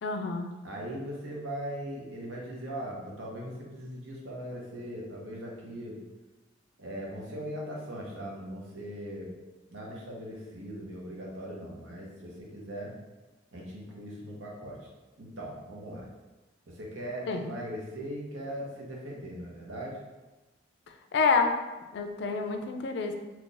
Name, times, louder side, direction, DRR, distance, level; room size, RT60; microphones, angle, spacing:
voice 1, 0.0-0.5 17.3-17.4 21.1-21.6 21.9-23.2, left 4 dB, 60° left, 5 dB, 0.4 m, -27 dB
voice 2, 0.6-6.0 6.8-9.3 9.7-12.9 13.5-14.8 15.2-16.1 16.7-20.0, equal, 90° right, -3 dB, 0.9 m, -39 dB
3.0 x 2.5 x 3.8 m, 1.1 s
head